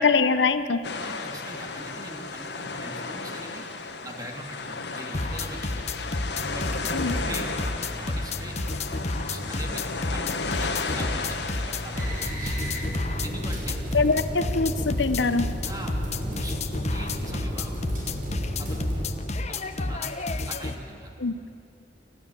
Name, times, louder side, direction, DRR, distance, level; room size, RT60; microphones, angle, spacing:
voice 1, 0.0-0.8 6.9-7.2 13.9-15.5 21.2-21.4, left 4 dB, 85° left, 11 dB, 0.9 m, -23 dB
sound 1, 0.8-12.3, left 4 dB, 65° left, 1.6 m, -34 dB
voice 2, 1.0-3.7 4.0-6.1 6.5-6.7 7.1-7.6 7.9-8.6 9.1-9.8 10.1-12.6 13.2-13.8 15.6-15.9 16.2-16.6 16.9-17.8 18.6-20.1 20.5-21.1, right 1 dB, 20° right, 1 dB, 2.9 m, -41 dB
sound 2, 5.1-20.8, left 2 dB, 40° left, 1.0 m, -31 dB
sound 3, 11.9-19.1, equal, 50° right, 6.2 m, -33 dB
28.0 x 13.5 x 9.0 m, 2.6 s
head